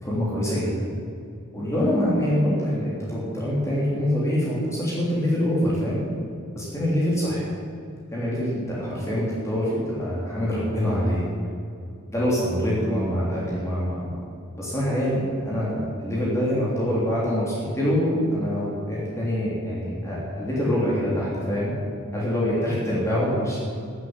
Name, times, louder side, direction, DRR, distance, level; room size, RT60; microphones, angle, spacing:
voice 1, 0.0-0.9 1.5-6.1 6.5-7.5 8.1-11.2 12.1-14.2 14.6-21.7 22.1-23.6, equal, 15° left, -7 dB, 3.4 m, -25 dB
13.0 x 8.5 x 9.8 m, 2.4 s
head